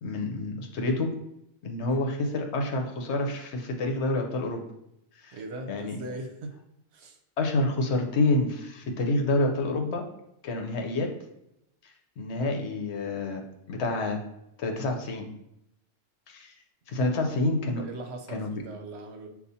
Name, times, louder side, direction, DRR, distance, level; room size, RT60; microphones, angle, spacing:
voice 1, 0.0-1.1 1.6-4.6 5.2-5.4 5.7-6.0 7.4-10.1 10.4-11.1 12.2-14.2 14.6-15.3 16.3-16.5 16.9-17.8 18.3-18.5, left 2 dB, 65° left, 3 dB, 1.0 m, -28 dB
voice 2, 5.3-6.6 6.9-7.2 8.5-8.6 16.9-17.3 17.7-19.3, right 2 dB, 65° right, 4 dB, 0.9 m, -40 dB
6.9 x 2.4 x 2.7 m, 0.82 s
omnidirectional pair, 1.2 m